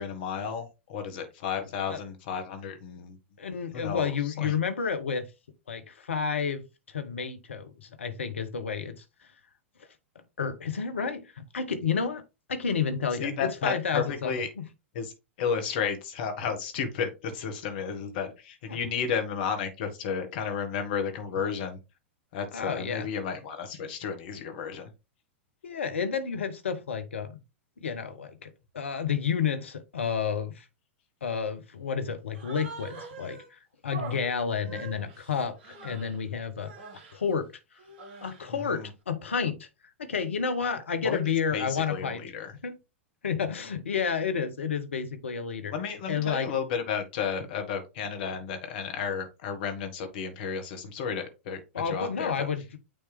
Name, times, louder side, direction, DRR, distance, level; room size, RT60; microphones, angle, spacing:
voice 1, 0.0-3.2 3.7-4.5 13.2-14.5 14.9-15.1 15.4-21.8 22.3-24.9 34.6-34.8 38.5-38.9 41.0-41.2 41.5-42.5 45.7-51.6 51.8-52.5, left 6 dB, 50° left, 1.6 m, -32 dB
voice 2, 3.4-5.3 5.7-6.6 6.9-9.0 10.4-12.2 12.5-14.3 14.6-14.7 18.7-18.8 22.5-23.1 25.6-27.4 27.8-30.7 31.2-36.7 37.1-37.5 38.2-39.7 40.0-42.2 42.6-42.8 43.2-45.7 46.1-46.5 51.7-52.6, left 6 dB, 70° left, 1.0 m, -30 dB
Human voice, 32.3-33.5 33.9-36.2 36.6-37.2 37.8-38.5, right 4 dB, 50° right, 1.7 m, -44 dB
8.8 x 3.3 x 3.4 m
figure-of-eight pair, 95°, 7 cm